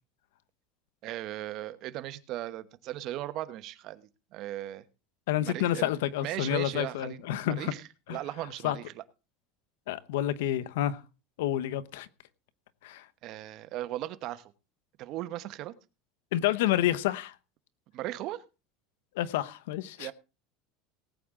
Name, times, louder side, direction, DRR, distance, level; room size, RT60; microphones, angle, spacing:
voice 1, 1.0-4.8 5.4-5.9 6.2-7.8 8.1-9.0 13.2-14.5 15.0-15.7 17.9-18.4 20.0-20.1, right 14 dB, 50° right, 1.0 m, -37 dB
voice 2, 5.3-7.7 8.1-8.2 8.6-8.8 9.9-11.0 11.4-12.1 12.8-13.1 16.3-17.3 19.1-20.1, left 13 dB, 85° left, 0.9 m, -29 dB
19.0 x 8.7 x 3.7 m
supercardioid pair, 130°, 0 cm